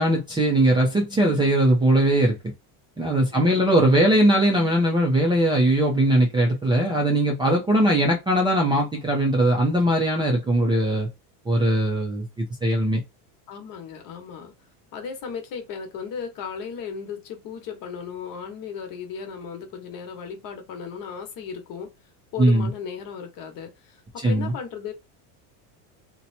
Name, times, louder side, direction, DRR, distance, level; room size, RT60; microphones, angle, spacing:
voice 1, 0.0-2.4 3.0-11.1 11.5-13.0 22.4-22.7 24.2-24.5, right 1 dB, 10° right, 0.5 m, -20 dB
voice 2, 3.3-4.1 7.7-7.9 13.5-14.5 14.9-21.9 22.3-24.9, left 6 dB, 45° left, 1.2 m, -36 dB
2.8 x 2.2 x 4.1 m
supercardioid pair, 145°, 46 cm